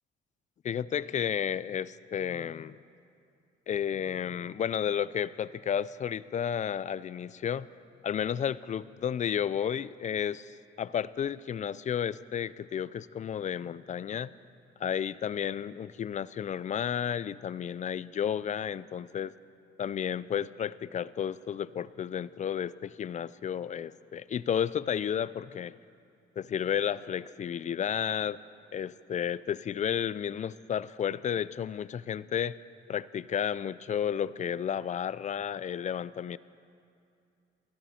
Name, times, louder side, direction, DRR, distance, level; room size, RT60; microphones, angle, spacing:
voice 1, 0.6-2.8 3.7-7.7 8.0-14.3 14.8-19.3 19.8-25.7 26.4-28.4 28.7-32.6 32.9-36.4, left 8 dB, 40° left, 18 dB, 0.4 m, -32 dB
18.5 x 14.0 x 4.3 m, 2.5 s
cardioid pair, 90°, 20 cm